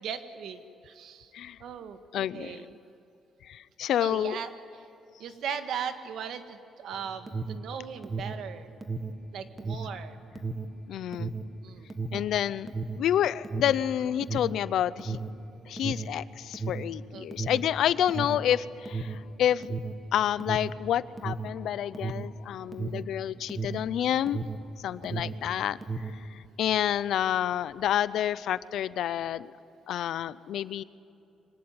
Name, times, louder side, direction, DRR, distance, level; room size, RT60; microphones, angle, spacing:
voice 1, 0.0-1.3 1.6-2.0 2.3-2.8 4.0-4.5 5.2-8.7 9.3-10.2 11.6-11.9 17.1-17.5 24.8-25.7, right 7 dB, 65° right, 8 dB, 1.7 m, -38 dB
voice 2, 2.1-2.6 3.5-4.4 10.9-11.3 12.1-12.7 13.0-15.2 15.7-19.7 20.1-24.4 24.8-25.8 26.6-29.5 29.9-30.8, left 11 dB, 65° left, 17 dB, 0.6 m, -28 dB
Alarm, 6.9-24.7 25.0-26.3, right 3 dB, 15° right, 1.3 m, -35 dB
24.5 x 19.0 x 9.7 m, 2.8 s
cardioid pair, 160°, 0 cm